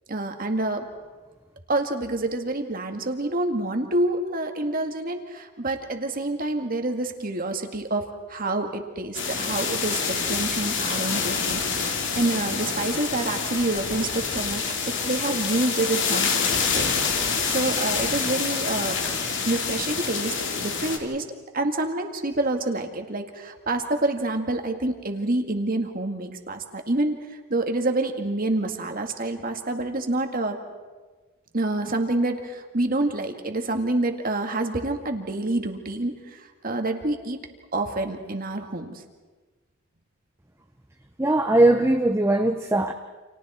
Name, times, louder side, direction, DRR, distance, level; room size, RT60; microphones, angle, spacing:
voice 1, 0.1-0.9 1.7-11.6 12.2-16.3 16.7-16.9 17.2-19.0 19.5-21.2 21.5-27.2 27.5-30.6 31.5-36.4 36.6-37.4 37.7-39.0, right 2 dB, 45° right, 5 dB, 2.2 m, -27 dB
sound 1, 9.1-21.0, left 5 dB, 60° left, 2.8 m, -27 dB
voice 2, 41.2-42.9, right 1 dB, 10° right, 5 dB, 0.8 m, -20 dB
30.0 x 28.0 x 4.4 m, 1.3 s
head